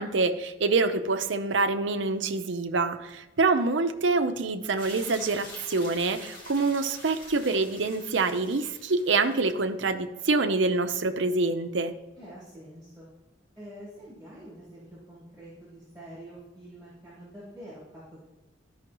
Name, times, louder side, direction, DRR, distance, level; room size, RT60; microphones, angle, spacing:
voice 1, 0.0-11.9, right 3 dB, 75° right, 8 dB, 0.6 m, -26 dB
sound 1, 4.8-9.5, left 1 dB, 50° left, 1.9 m, -46 dB
voice 2, 12.2-13.1 13.6-18.3, right 1 dB, ahead, -11 dB, 3.3 m, -46 dB
13.0 x 5.6 x 3.0 m, 0.99 s
head